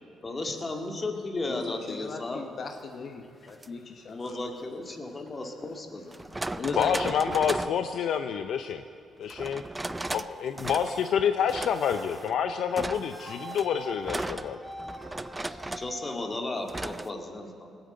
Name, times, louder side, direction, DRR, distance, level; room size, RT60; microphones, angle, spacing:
voice 1, 0.2-2.4 4.1-6.2 15.4-17.7, left 2 dB, 30° left, 2 dB, 2.0 m, -35 dB
voice 2, 1.5-4.4 6.3-7.2 7.6-7.8, left 5 dB, 55° left, 4 dB, 1.2 m, -38 dB
sound 1, 3.5-3.7 5.3-5.4 6.1-7.8 9.3-10.3 10.6-11.1 11.5-12.3 12.8-16.0 16.7-17.1, right 2 dB, 15° right, 0.4 m, -36 dB
voice 3, 6.8-8.8 9.2-9.6 10.1-14.6, left 7 dB, 70° left, 8 dB, 0.6 m, -28 dB
sound 2, 9.8-10.2 10.6-11.1 11.5-12.0 12.6-16.2, right 1 dB, ahead, 1.9 m, -44 dB
19.5 x 9.0 x 7.8 m, 2.5 s
cardioid pair, 90°, 0 cm